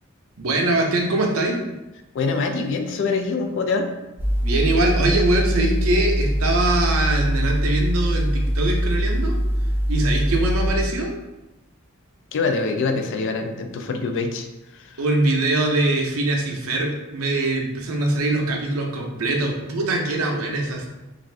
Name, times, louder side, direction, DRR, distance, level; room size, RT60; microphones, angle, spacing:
voice 1, 0.4-1.6 4.4-9.4 9.9-11.1 15.0-20.9, right 2 dB, 85° right, 1 dB, 0.6 m, -22 dB
voice 2, 2.1-3.9 12.3-14.5 14.7-14.8, left 4 dB, 60° left, 5 dB, 0.3 m, -24 dB
sound 1, 4.2-10.7, equal, 10° right, 0.5 m, -22 dB
2.5 x 2.4 x 3.2 m, 1.0 s
head